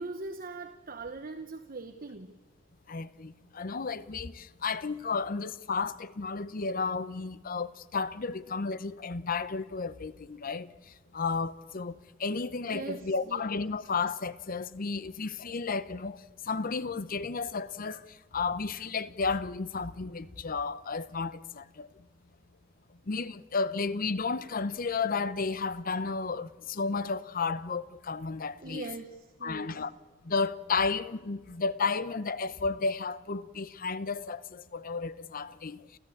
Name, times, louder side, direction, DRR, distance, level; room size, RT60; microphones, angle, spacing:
voice 1, 0.0-2.4 12.7-13.4 28.6-29.8, right 3 dB, 50° right, 1.0 m, -41 dB
voice 2, 2.9-10.7 11.1-11.9 12.2-16.2 16.4-18.0 18.3-21.9 23.1-28.9 29.4-29.9 30.2-36.0, left 4 dB, 50° left, 0.7 m, -32 dB
29.5 x 14.0 x 8.5 m
head